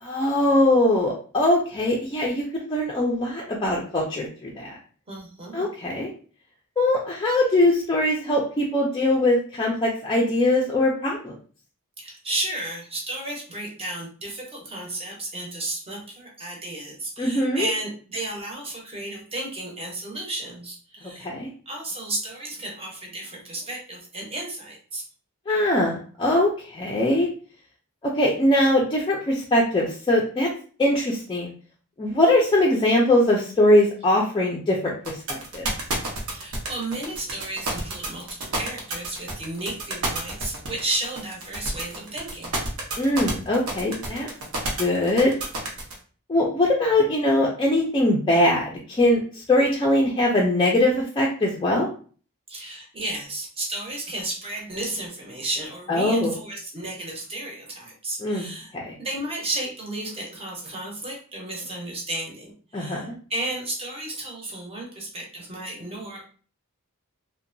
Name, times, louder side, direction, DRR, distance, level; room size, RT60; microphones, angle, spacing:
voice 1, 0.0-4.8 5.5-6.1 6.8-11.3 17.2-17.7 21.2-21.5 25.5-27.3 28.0-30.5 30.8-31.5 32.0-35.7 43.0-44.3 44.8-45.3 46.3-51.9 55.9-56.3 58.2-58.5 58.7-59.0 62.7-63.1, left 1 dB, 20° left, -3 dB, 0.4 m, -22 dB
voice 2, 5.1-5.7 12.0-21.3 21.7-25.0 36.3-42.6 52.5-58.7 59.0-66.2, right 2 dB, 25° right, -1 dB, 0.8 m, -33 dB
sound 1, 35.0-45.9, right 2 dB, 75° right, 0.8 m, -29 dB
2.8 x 2.1 x 2.5 m, 0.41 s
head